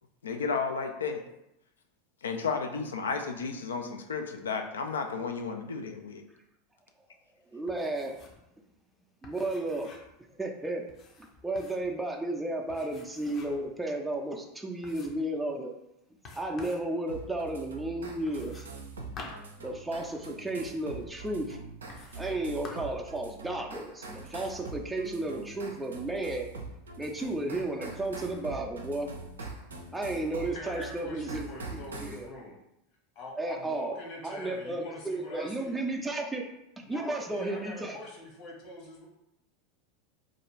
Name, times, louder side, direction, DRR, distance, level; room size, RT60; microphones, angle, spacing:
voice 1, 0.2-1.2 2.2-6.2, left 5 dB, 85° left, 5 dB, 0.3 m, -33 dB
voice 2, 7.5-8.1 9.2-9.9 10.4-10.8 11.4-15.7 16.4-18.6 19.6-21.6 22.2-26.5 27.0-29.1 29.4-29.5 29.9-31.5 31.7-32.3 33.4-34.0 34.2-36.5 36.9-38.0, right 2 dB, 10° right, 1 dB, 0.4 m, -33 dB
sound 1, 7.7-8.5 8.7-8.8 9.2-10.2 10.9-11.9 12.7-13.7 14.2-14.3 14.8-15.3 16.2-16.9 18.3-20.3 21.1-21.2 21.9-22.4 22.6-23.0, left 3 dB, 40° left, 0.6 m, -49 dB
sound 2, 17.1-32.2, right 3 dB, 85° right, 0.4 m, -43 dB
voice 3, 30.5-32.6 33.1-35.8 36.8-39.1, left 2 dB, 55° left, -2 dB, 1.1 m, -44 dB
2.5 x 2.3 x 3.1 m, 0.85 s
hypercardioid pair, 90°, 0 cm